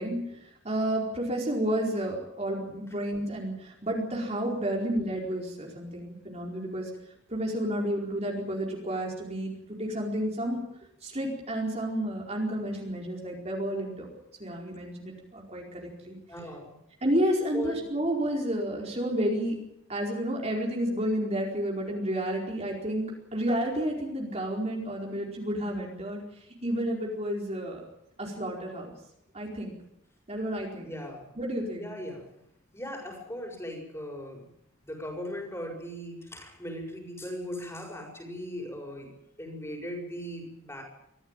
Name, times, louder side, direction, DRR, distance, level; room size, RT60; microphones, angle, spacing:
voice 1, 0.0-6.9 7.3-10.6 11.0-14.1 14.4-16.2 17.0-19.6 19.9-26.2 26.6-27.8 28.2-28.9 29.3-29.7 30.3-30.9 31.4-31.9, right 1 dB, 30° right, -1 dB, 4.7 m, -31 dB
voice 2, 16.3-16.8 17.5-17.8 30.8-31.3 31.7-32.3 32.7-34.5 34.8-40.8, equal, 15° left, 2 dB, 6.7 m, -38 dB
24.5 x 16.0 x 9.0 m, 0.76 s
head